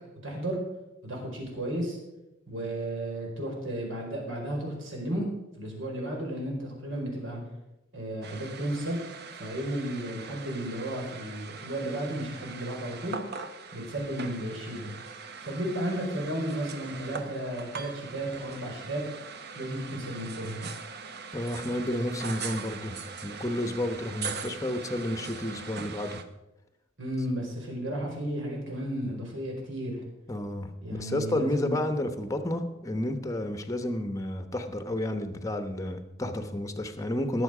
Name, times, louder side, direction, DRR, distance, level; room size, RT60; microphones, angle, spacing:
voice 1, 0.2-0.6 1.0-2.0 2.5-5.2 5.6-7.4 7.9-9.0 9.3-13.2 13.7-14.9 15.4-19.0 19.5-20.6 27.0-30.0 30.8-31.7, right 1 dB, 70° right, 0 dB, 4.6 m, -33 dB
sound 1, 8.2-26.2, right 5 dB, 55° right, 1.0 m, -41 dB
voice 2, 21.3-26.2 30.3-37.4, left 1 dB, 15° left, 8 dB, 1.0 m, -31 dB
19.5 x 7.7 x 5.0 m, 0.97 s
head